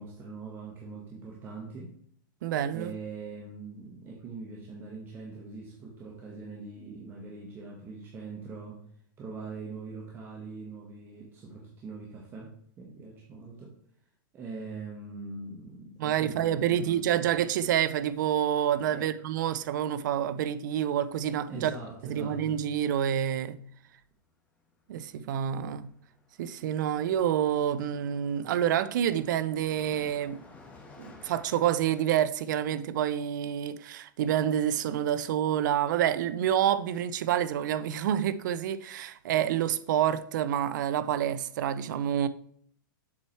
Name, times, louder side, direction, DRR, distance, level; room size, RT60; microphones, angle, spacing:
voice 1, 0.0-1.9 2.7-8.8 9.2-13.8 14.3-17.3 18.9-19.1 21.5-22.6, right 3 dB, 20° right, 1.1 m, -42 dB
voice 2, 2.4-2.9 16.0-21.7 22.1-23.6 24.9-25.9 26.4-30.4 31.0-42.3, right 10 dB, 60° right, 0.5 m, -28 dB
Car passing by, 24.6-24.8 25.0-32.0, left 3 dB, 15° left, 1.2 m, -55 dB
7.2 x 4.7 x 4.5 m
supercardioid pair, 155°, 11 cm